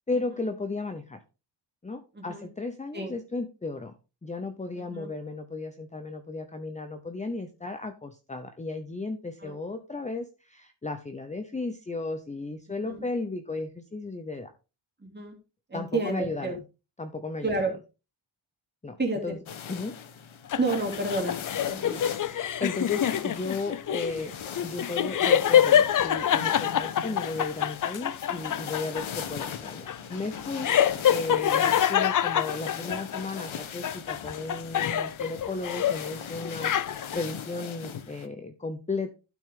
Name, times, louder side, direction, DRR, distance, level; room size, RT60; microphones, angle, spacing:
voice 1, 0.1-1.2 1.8-3.9 4.2-14.5 15.7-16.6 17.0-17.7 18.8-19.0 19.2-19.4 19.7-20.0 22.2-24.3 24.6-30.7 31.0-39.1, left 3 dB, 15° left, 8 dB, 0.7 m, -35 dB
voice 2, 2.1-2.5 2.9-3.1 4.7-5.1 9.4-9.5 12.8-13.1 15.0-15.4 15.7-16.6 17.4-17.7 19.0-19.3 20.6-21.4 21.7-22.0 27.1-27.2, right 2 dB, 20° right, 0 dB, 3.1 m, -30 dB
sound 1, 19.5-38.3, left 8 dB, 70° left, 1.2 m, -40 dB
sound 2, 20.5-33.5 33.8-36.1 36.4-37.2, left 9 dB, 45° left, 0.4 m, -26 dB
12.0 x 6.2 x 3.8 m, 0.30 s
wide cardioid pair, 155°, 49 cm